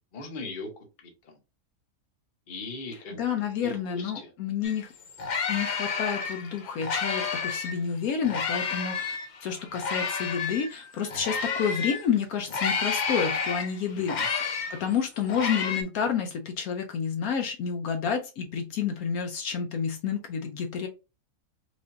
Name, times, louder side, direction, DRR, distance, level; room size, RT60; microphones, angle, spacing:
voice 1, 0.1-0.7 1.0-1.4 2.5-3.2 3.6-4.3 13.9-14.3, left 3 dB, 40° left, 3 dB, 0.9 m, -39 dB
voice 2, 2.9-4.9 5.5-14.2 14.7-20.9, left 7 dB, 75° left, 5 dB, 1.0 m, -30 dB
sound 1, 4.6-4.8 5.0-7.8 8.2-12.1 12.5-15.8, left 5 dB, 90° left, 0.4 m, -30 dB
4.9 x 2.6 x 2.5 m, 0.29 s
omnidirectional pair, 1.6 m